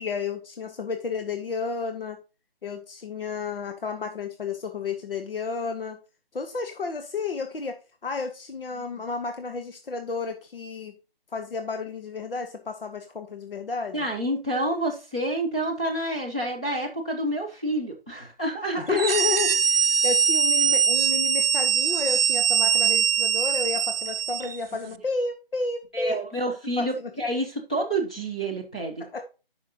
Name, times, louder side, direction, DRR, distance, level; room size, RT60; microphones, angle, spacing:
voice 1, 0.0-2.2 2.6-6.0 6.3-11.0 11.3-14.1 18.8-26.2 26.8-27.1 29.0-29.2, left 4 dB, 75° left, 6 dB, 1.1 m, -31 dB
voice 2, 13.9-19.0 25.9-29.2, right 1 dB, 5° left, -3 dB, 0.5 m, -28 dB
sound 1, 18.9-24.6, right 7 dB, 75° right, 0.6 m, -22 dB
11.0 x 5.6 x 2.9 m, 0.31 s
figure-of-eight pair, 160°, 29 cm